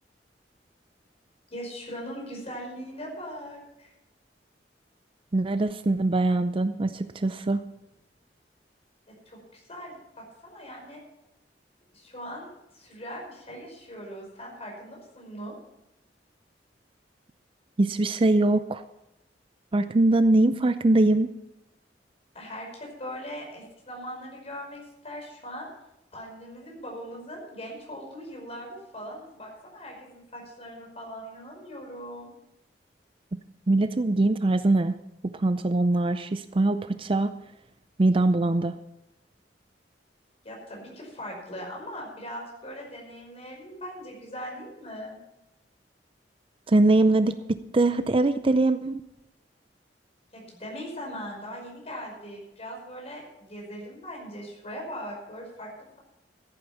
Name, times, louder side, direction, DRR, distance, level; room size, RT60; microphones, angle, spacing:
voice 1, 1.5-3.9 9.3-11.0 11.9-15.6 22.3-25.7 26.1-32.3 40.4-45.2 50.3-55.7, equal, 35° left, -1 dB, 5.4 m, -40 dB
voice 2, 5.3-7.6 17.8-18.8 19.7-21.3 33.7-35.0 35.3-37.3 38.0-38.8 46.7-49.0, right 2 dB, 30° right, 11 dB, 0.5 m, -22 dB
14.5 x 8.9 x 5.8 m, 0.88 s
head